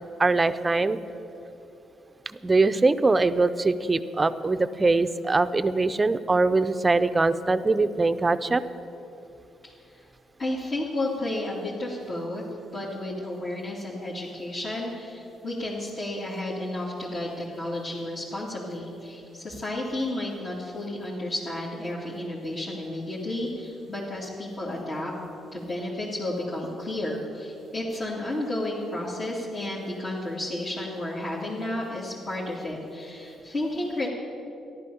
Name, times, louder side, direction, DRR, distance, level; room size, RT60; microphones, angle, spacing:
voice 1, 0.2-1.0 2.4-8.6, right 3 dB, 25° right, 12 dB, 0.6 m, -22 dB
voice 2, 9.6-10.0 10.4-12.4 12.7-25.1 25.5-34.1, left 1 dB, 45° left, -7 dB, 2.8 m, -32 dB
13.5 x 11.5 x 7.1 m, 2.8 s
cardioid pair, 90°, 0 cm